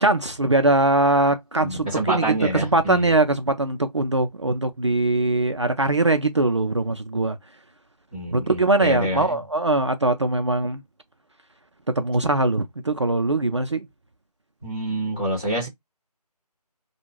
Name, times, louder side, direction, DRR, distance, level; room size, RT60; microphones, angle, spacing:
voice 1, 0.0-7.4 8.3-10.8 12.0-13.9, right 2 dB, 45° right, 0.4 m, -21 dB
voice 2, 1.6-3.1 8.1-9.4 14.6-15.7, right 1 dB, 10° left, 0.8 m, -27 dB
2.4 x 2.2 x 3.0 m
figure-of-eight pair, 175°, 20 cm